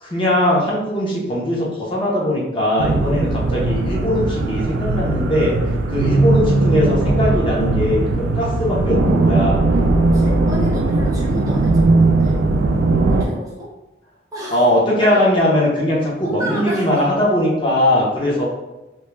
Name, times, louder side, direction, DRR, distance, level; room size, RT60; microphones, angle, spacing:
voice 1, 0.0-5.6 5.9-9.6 14.5-18.4, left 1 dB, 25° left, -5 dB, 0.6 m, -19 dB
sound 1, 2.8-13.2, right 2 dB, 85° right, 0.3 m, -18 dB
voice 2, 10.0-12.4 13.0-13.7 14.3-14.7 15.0-15.3 16.2-17.0 18.4-18.5, right 1 dB, 20° right, -5 dB, 0.4 m, -31 dB
2.2 x 2.1 x 3.0 m, 1.0 s
head